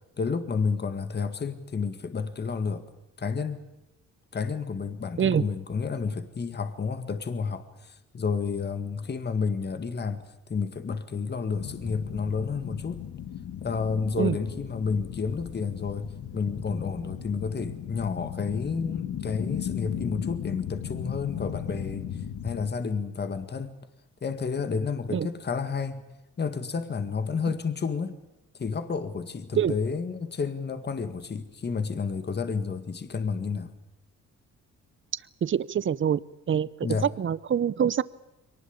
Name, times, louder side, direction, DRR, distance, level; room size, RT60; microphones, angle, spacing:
voice 1, 0.2-2.9 3.2-3.6 4.3-13.0 13.6-23.8 24.2-26.1 26.4-28.1 28.5-33.7 36.8-37.1, left 5 dB, 35° left, 1.9 m, -30 dB
sound 1, 11.5-22.7, left 9 dB, 75° left, 1.8 m, -36 dB
voice 2, 35.4-36.2 36.5-36.7 37.0-38.0, right 8 dB, 40° right, 0.8 m, -24 dB
23.0 x 19.5 x 8.7 m
cardioid pair, 90°, 30 cm